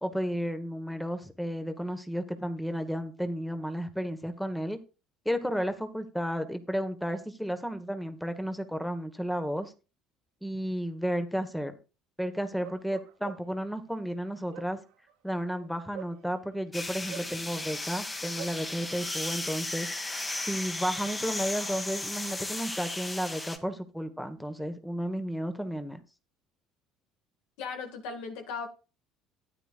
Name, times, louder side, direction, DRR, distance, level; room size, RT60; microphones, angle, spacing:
voice 1, 0.0-4.8 5.2-9.7 10.4-11.8 12.2-14.8 15.2-19.9 20.4-26.0, equal, 5° left, 1.3 m, -33 dB
Bark, 12.6-13.7 14.3-16.6 17.1-18.6, right 14 dB, 70° right, 1.2 m, -46 dB
sound 1, 16.7-23.6, left 2 dB, 20° left, 2.0 m, -35 dB
voice 2, 27.6-28.7, left 5 dB, 70° left, 1.9 m, -37 dB
13.0 x 9.3 x 2.5 m
hypercardioid pair, 65°, 0 cm